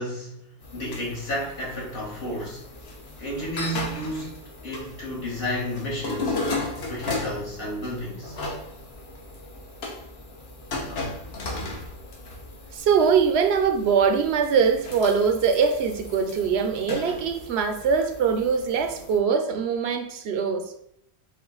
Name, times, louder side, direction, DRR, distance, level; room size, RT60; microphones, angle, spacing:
voice 1, 0.0-2.7 3.2-6.4 6.8-8.4, equal, 55° left, -4 dB, 1.6 m, -32 dB
sound 1, 0.6-19.2, left 2 dB, 70° left, 1.1 m, -36 dB
voice 2, 12.7-20.7, right 6 dB, 75° right, 7 dB, 0.8 m, -22 dB
5.4 x 2.2 x 3.9 m, 0.72 s
omnidirectional pair, 1.1 m